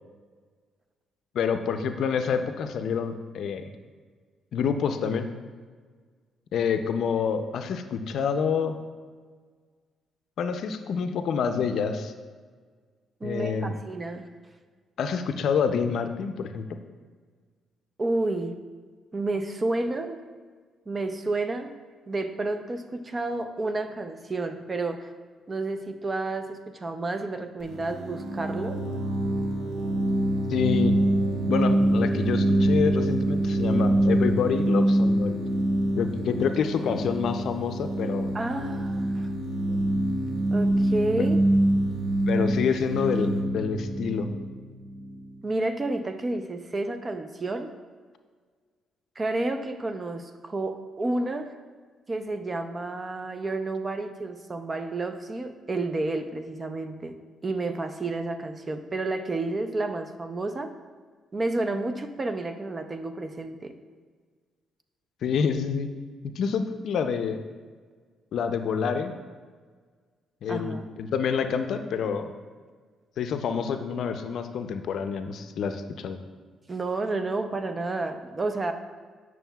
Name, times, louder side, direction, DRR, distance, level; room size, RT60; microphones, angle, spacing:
voice 1, 1.3-3.6 4.5-5.3 6.5-8.8 10.4-12.1 13.2-13.7 15.0-16.7 30.5-31.0 31.5-35.4 36.0-38.3 42.3-44.3 65.2-65.9 66.2-67.4 68.3-69.1 70.4-72.3 73.2-76.2, left 6 dB, 70° left, 8 dB, 0.4 m, -27 dB
voice 2, 13.2-14.3 18.0-18.6 19.1-20.2 20.9-21.7 22.1-25.1 25.5-28.8 38.3-39.3 39.7-39.8 40.5-41.4 45.4-47.7 49.2-51.5 52.1-60.7 61.3-63.7 70.5-70.8 76.7-78.7, right 2 dB, 30° right, 7 dB, 0.5 m, -30 dB
sound 1, 27.6-45.2, right 1 dB, 80° right, 1.2 m, -25 dB
8.9 x 6.1 x 2.3 m, 1.5 s
cardioid pair, 90°, 0 cm